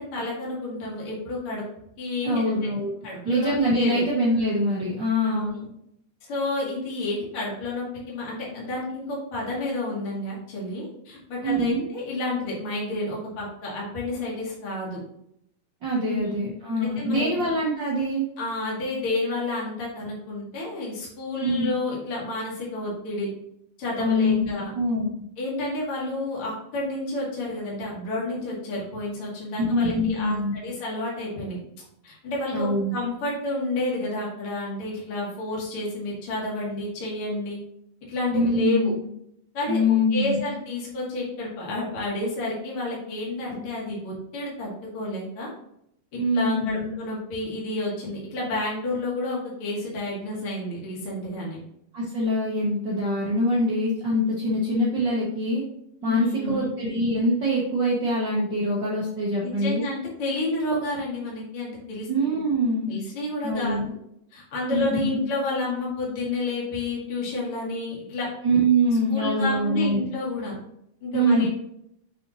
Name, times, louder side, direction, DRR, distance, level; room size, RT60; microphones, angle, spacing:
voice 1, 0.0-1.6 2.0-2.5 3.0-4.0 5.2-5.7 6.3-15.0 16.0-16.4 16.8-17.5 18.4-23.3 23.8-24.7 25.4-31.6 32.0-37.6 38.1-38.9 39.5-39.8 40.1-45.5 46.1-51.6 56.0-56.7 59.4-62.1 62.9-63.8 64.3-68.3 69.1-70.5 71.0-71.5, left 2 dB, 40° left, -5 dB, 2.8 m, -30 dB
voice 2, 2.2-2.9 3.2-5.6 11.4-11.8 15.8-18.3 21.4-21.7 24.0-25.1 29.6-30.5 32.5-32.9 38.3-39.0 39.7-40.5 46.2-46.9 51.9-55.6 56.0-59.8 62.1-62.9 63.4-63.9 64.7-65.2 68.4-70.0 71.1-71.5, equal, 85° right, -4 dB, 1.0 m, -24 dB
7.3 x 5.4 x 3.0 m, 0.76 s
omnidirectional pair, 4.0 m